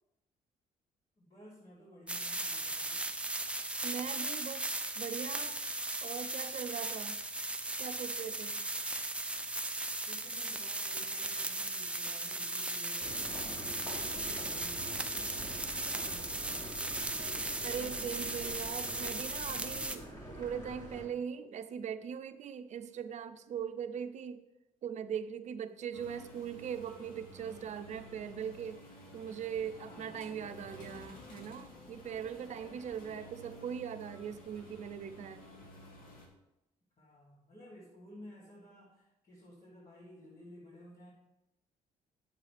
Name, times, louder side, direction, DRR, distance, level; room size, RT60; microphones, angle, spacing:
voice 1, 1.2-3.0 10.0-16.8 29.8-30.6 33.0-33.5 37.0-41.1, equal, 45° left, -8 dB, 3.2 m, -55 dB
sound 1, 2.1-20.0, right 2 dB, 10° right, 0.6 m, -37 dB
voice 2, 3.8-5.6 6.0-7.2 7.8-8.6 17.6-20.1 20.4-24.4 24.8-28.8 29.1-35.5, right 8 dB, 55° right, 10 dB, 0.6 m, -40 dB
sound 2, 13.0-21.1, right 1 dB, 25° left, 2.8 m, -46 dB
sound 3, 25.9-36.3, left 1 dB, 80° left, 1.9 m, -52 dB
8.9 x 7.5 x 3.4 m, 0.91 s
cardioid pair, 95°, 15 cm